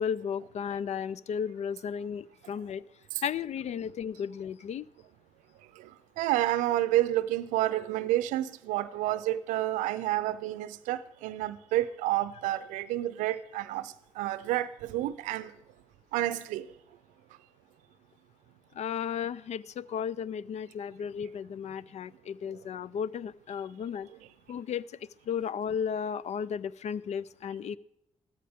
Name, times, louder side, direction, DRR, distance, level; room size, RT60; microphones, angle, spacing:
voice 1, 0.0-2.8 3.2-4.9 18.8-24.1 24.5-24.8 25.3-27.8, left 7 dB, 60° left, 0.4 m, -34 dB
voice 2, 6.2-15.5 16.1-16.7, right 14 dB, 90° right, 0.5 m, -30 dB
14.0 x 13.5 x 3.6 m
supercardioid pair, 45°, 13 cm